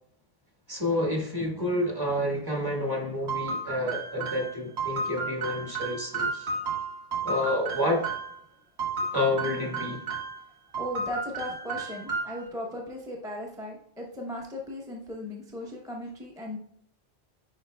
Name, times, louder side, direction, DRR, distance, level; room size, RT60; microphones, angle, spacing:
voice 1, 0.7-6.5 7.2-8.1 9.1-10.0, left 1 dB, 20° right, -1 dB, 1.5 m, -29 dB
sound 1, 3.3-8.4 8.8-10.4 10.7-12.5, right 4 dB, 75° right, 1.5 m, -32 dB
voice 2, 10.7-16.6, left 1 dB, 5° right, -1 dB, 0.7 m, -37 dB
9.6 x 4.3 x 2.3 m, 0.70 s
omnidirectional pair, 1.1 m